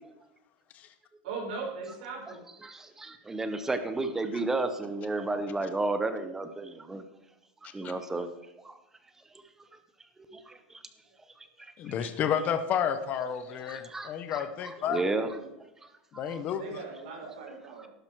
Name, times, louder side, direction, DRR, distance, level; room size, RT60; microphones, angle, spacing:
voice 1, 1.2-2.4 14.9-15.5 16.5-17.9, right 4 dB, 70° right, -2 dB, 5.2 m, -39 dB
voice 2, 2.6-7.0 7.6-8.3 8.6-8.7 9.6-9.7 10.3-10.8 11.4-12.1 13.5-15.4 16.1-16.4 17.8-17.9, right 2 dB, 10° right, 10 dB, 0.7 m, -33 dB
voice 3, 11.8-15.0 16.1-16.8, left 8 dB, 25° left, 10 dB, 0.8 m, -31 dB
12.0 x 10.5 x 4.6 m, 0.91 s
supercardioid pair, 165°, 6 cm